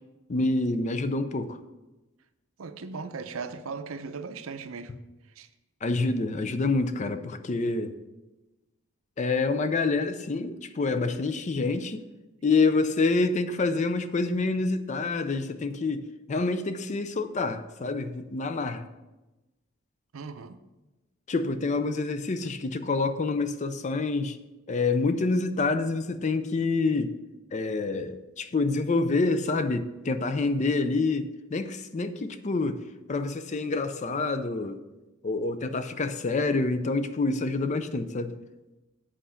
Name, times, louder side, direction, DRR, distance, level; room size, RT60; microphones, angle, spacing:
voice 1, 0.3-1.6 5.8-7.9 9.2-12.0 12.4-18.9 21.3-24.4 24.7-27.1 27.5-32.8 33.1-34.8 35.2-38.3, left 3 dB, 35° left, 0.5 m, -27 dB
voice 2, 2.6-4.9 5.4-5.5 20.1-20.6, right 4 dB, 75° right, 0.6 m, -37 dB
7.7 x 5.0 x 5.7 m
head